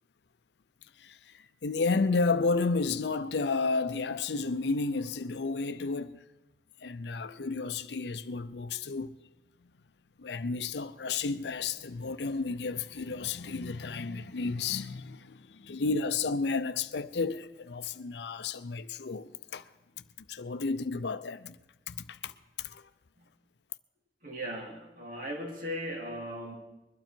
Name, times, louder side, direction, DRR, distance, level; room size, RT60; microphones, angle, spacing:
voice 1, 1.0-6.2 6.8-9.1 10.2-19.7 20.3-21.6 21.9-22.8, left 4 dB, 80° left, 0.6 m, -32 dB
voice 2, 24.2-26.6, equal, 50° right, 2.8 m, -38 dB
21.5 x 12.0 x 4.5 m
head